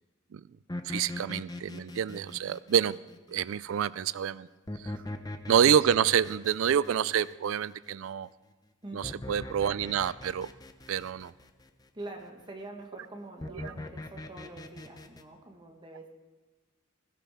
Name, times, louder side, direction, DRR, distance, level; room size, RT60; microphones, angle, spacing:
sound 1, 0.7-3.6 4.7-8.1 9.0-11.7 13.4-15.2, left 1 dB, 20° left, 0.8 m, -41 dB
voice 1, 0.8-3.0 3.3-4.5 4.8-4.9 5.5-8.3 8.9-10.5 10.9-11.3 13.6-13.7, right 8 dB, 80° right, 18 dB, 0.4 m, -27 dB
voice 2, 8.8-9.2 11.9-16.1, right 2 dB, 25° right, 2 dB, 1.4 m, -45 dB
21.0 x 16.0 x 3.6 m, 1.3 s
head